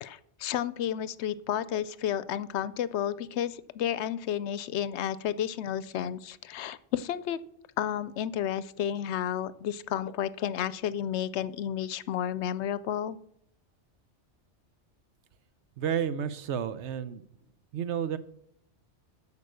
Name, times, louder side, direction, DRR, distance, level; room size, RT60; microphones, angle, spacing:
voice 1, 0.0-7.4 7.8-13.2, left 10 dB, 75° left, 17 dB, 0.8 m, -31 dB
voice 2, 15.8-17.2 17.7-18.2, right 8 dB, 80° right, 13 dB, 1.0 m, -31 dB
13.0 x 5.2 x 6.8 m, 0.72 s
omnidirectional pair, 1.2 m